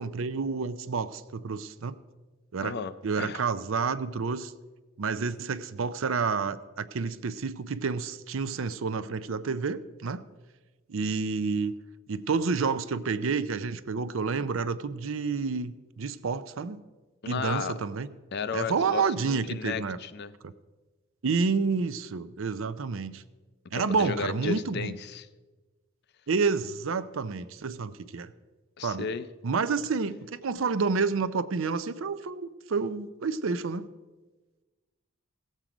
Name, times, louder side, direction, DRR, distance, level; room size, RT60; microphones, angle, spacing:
voice 1, 0.0-2.0 2.5-2.8 3.0-4.5 5.0-10.2 10.9-11.7 12.1-16.8 17.3-18.1 18.5-20.0 20.4-20.5 21.2-23.2 23.7-25.0 26.3-28.3 28.8-29.1 29.4-33.9, right 4 dB, 65° right, 14 dB, 0.5 m, -29 dB
voice 2, 2.6-3.4 17.2-17.7 18.3-20.3 23.7-25.3 28.8-29.3, left 5 dB, 50° left, 13 dB, 0.5 m, -34 dB
16.5 x 7.5 x 5.0 m, 1.3 s
head